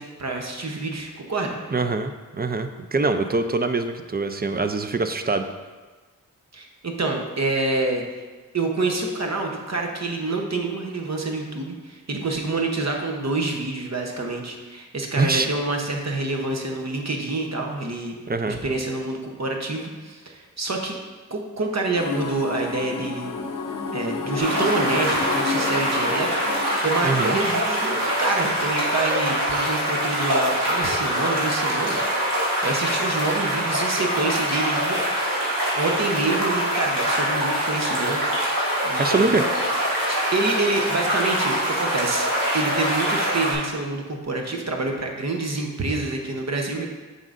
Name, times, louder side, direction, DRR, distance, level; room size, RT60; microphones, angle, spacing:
voice 1, 0.0-1.6 6.5-8.2 8.5-18.1 18.5-21.0 21.3-23.3 23.9-26.3 26.6-35.0 35.7-38.3 38.8-39.4 40.1-42.3 42.5-46.9, right 2 dB, 50° right, 2 dB, 0.9 m, -27 dB
voice 2, 1.7-5.5 15.1-15.5 18.3-18.6 27.0-27.4 39.0-39.4, right 3 dB, 30° right, 8 dB, 0.4 m, -24 dB
sound 1, 21.9-26.8, left 4 dB, 70° left, 0.6 m, -30 dB
sound 2, 24.4-43.5, equal, 80° right, 1.8 m, -24 dB
7.5 x 5.3 x 2.5 m, 1.3 s
wide cardioid pair, 65°, 34 cm